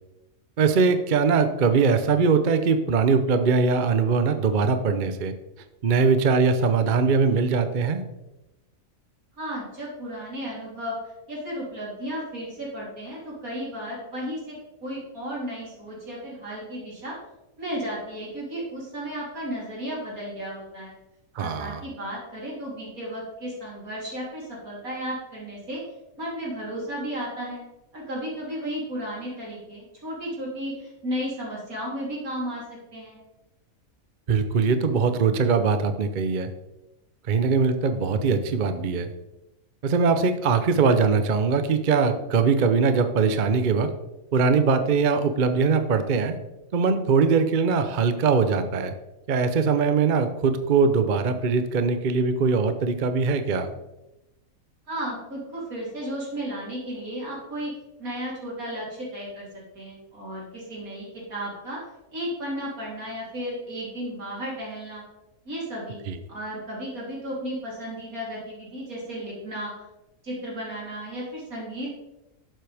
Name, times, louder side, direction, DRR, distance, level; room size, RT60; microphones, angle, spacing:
voice 1, 0.6-5.3 5.8-8.0 21.3-21.8 34.3-36.5 37.3-39.1 39.8-43.9 44.3-46.4 46.7-48.9 49.3-53.7 66.1-66.2, right 5 dB, 45° right, 9 dB, 0.7 m, -21 dB
voice 2, 9.4-11.0 11.3-17.2 17.6-20.9 21.4-25.8 26.2-27.6 27.9-32.6 32.9-33.2 54.9-57.7 58.0-61.8 62.1-65.0 65.5-66.0 66.3-69.9 70.2-71.9, equal, 85° right, -5 dB, 3.9 m, -34 dB
11.5 x 7.6 x 3.5 m, 0.94 s
omnidirectional pair, 1.5 m